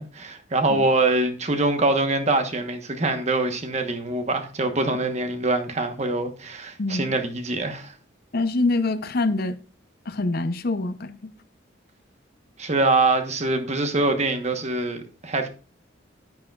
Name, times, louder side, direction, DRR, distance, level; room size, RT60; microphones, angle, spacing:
voice 1, 0.0-7.9 12.6-15.5, right 2 dB, 35° right, 1.1 m, -24 dB
voice 2, 6.8-7.1 8.3-9.5 10.1-11.2, left 2 dB, 50° left, 0.7 m, -25 dB
9.6 x 9.2 x 2.3 m
head